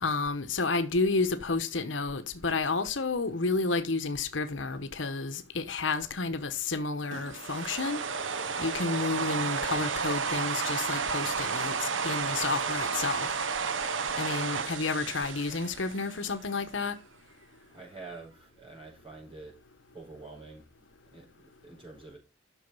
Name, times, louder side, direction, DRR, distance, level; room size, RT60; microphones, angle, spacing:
voice 1, 0.0-8.0 8.6-13.3 14.2-17.0, left 3 dB, 80° left, 1.1 m, -31 dB
sound 1, 7.1-16.3, right 5 dB, 85° right, 1.0 m, -32 dB
voice 2, 17.7-19.5 19.9-22.2, right 3 dB, 25° right, 4.3 m, -47 dB
11.5 x 6.4 x 5.5 m
head